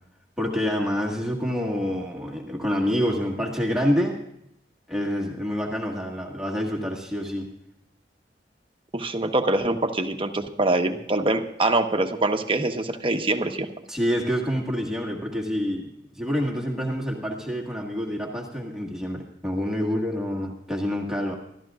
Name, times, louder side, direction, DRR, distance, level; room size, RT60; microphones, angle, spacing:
voice 1, 0.4-4.2 4.9-7.5 13.9-21.4, equal, 5° right, -1 dB, 1.7 m, -27 dB
voice 2, 8.9-13.7, right 2 dB, 30° right, 5 dB, 1.2 m, -24 dB
27.5 x 13.5 x 2.5 m, 0.79 s
head